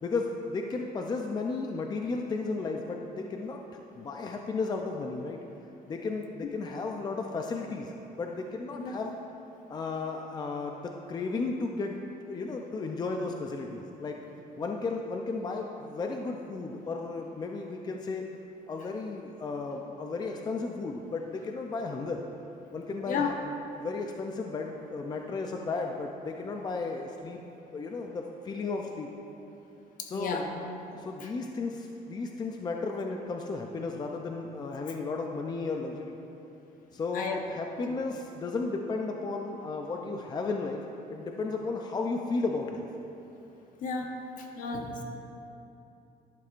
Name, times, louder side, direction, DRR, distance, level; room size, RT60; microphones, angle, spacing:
voice 1, 0.0-3.6 4.0-5.4 5.9-9.2 9.7-12.0 12.3-14.2 14.6-18.2 18.7-22.2 22.7-27.4 27.7-29.1 30.1-30.7 30.9-36.2 36.9-42.9, left 3 dB, 25° left, 2 dB, 0.5 m, -34 dB
voice 2, 30.0-30.5 31.2-31.3 37.1-37.4 37.9-38.0 43.8-44.1 44.4-45.0, left 5 dB, 60° left, 2 dB, 1.1 m, -33 dB
11.5 x 11.0 x 2.5 m, 2.9 s
cardioid pair, 140°, 16 cm